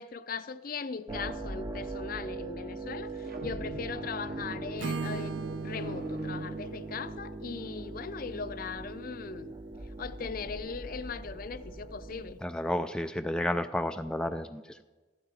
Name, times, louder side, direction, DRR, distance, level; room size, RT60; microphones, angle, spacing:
voice 1, 0.0-5.3 5.6-9.5 10.0-12.4, left 5 dB, 50° left, 13 dB, 0.5 m, -39 dB
sound 1, 1.1-12.3, right 2 dB, 20° right, 0.7 m, -41 dB
sound 2, 3.1-7.3, right 1 dB, 55° right, 1.5 m, -42 dB
Acoustic guitar / Strum, 4.8-8.8, right 4 dB, 70° right, 0.5 m, -40 dB
voice 2, 12.4-14.8, left 1 dB, 5° left, 8 dB, 0.3 m, -31 dB
15.0 x 12.0 x 4.3 m, 1.3 s
head